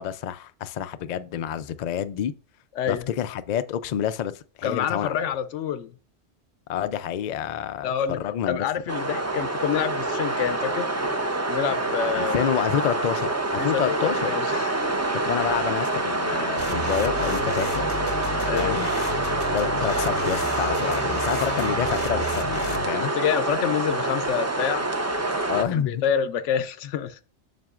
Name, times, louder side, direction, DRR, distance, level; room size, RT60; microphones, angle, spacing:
voice 1, 0.0-2.3 2.9-5.3 6.7-8.7 12.1-14.4 15.1-17.9 18.5-18.9 19.5-23.1 25.5-26.0, left 9 dB, 60° left, 0.4 m, -28 dB
voice 2, 2.8-3.1 4.6-6.0 7.8-8.2 8.5-10.9 11.5-12.4 13.6-14.8 18.2-18.9 22.9-24.9 25.6-27.2, left 8 dB, 90° left, 1.0 m, -27 dB
sound 1, 8.9-25.6, right 2 dB, 20° right, 0.5 m, -26 dB
sound 2, 16.6-22.9, left 4 dB, 40° left, 0.8 m, -34 dB
7.6 x 6.0 x 2.4 m
omnidirectional pair, 1.2 m